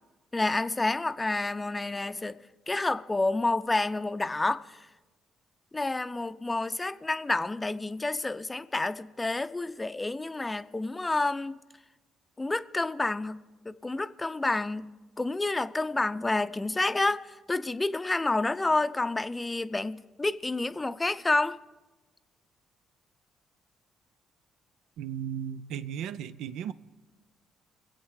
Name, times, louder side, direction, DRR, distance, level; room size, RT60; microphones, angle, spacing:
voice 1, 0.3-2.4 2.7-4.8 5.7-11.6 12.4-21.6, left 2 dB, 20° left, 0.6 m, -29 dB
voice 2, 25.0-26.7, right 9 dB, 75° right, 0.5 m, -35 dB
23.5 x 8.2 x 4.8 m
supercardioid pair, 60°, 0 cm